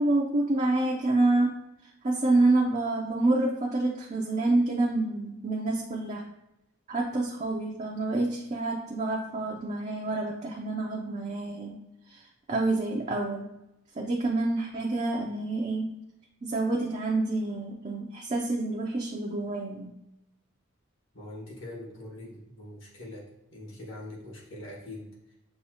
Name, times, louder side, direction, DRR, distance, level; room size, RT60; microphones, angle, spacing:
voice 1, 0.0-1.6 2.0-6.2 6.9-11.8 12.1-13.5 14.0-16.0 16.4-19.9, right 2 dB, 35° right, -1 dB, 0.4 m, -27 dB
voice 2, 21.1-23.2 23.5-25.1, left 1 dB, 70° left, -3 dB, 1.4 m, -42 dB
6.7 x 2.3 x 2.8 m, 0.92 s
head